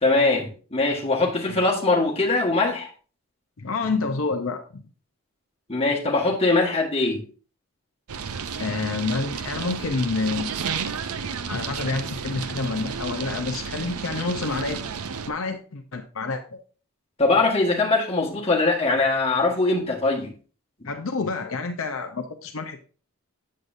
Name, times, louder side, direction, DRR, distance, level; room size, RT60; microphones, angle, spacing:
voice 1, 0.0-2.9 5.7-7.2 17.2-20.3 20.8-20.9, left 3 dB, 25° left, 1.4 m, -22 dB
voice 2, 3.6-4.8 8.6-10.6 11.5-14.8 15.3-16.6 20.8-22.8, left 3 dB, 65° left, 0.6 m, -28 dB
sound 1, 8.1-15.3, right 6 dB, 80° right, 0.6 m, -32 dB
8.0 x 7.5 x 2.6 m
head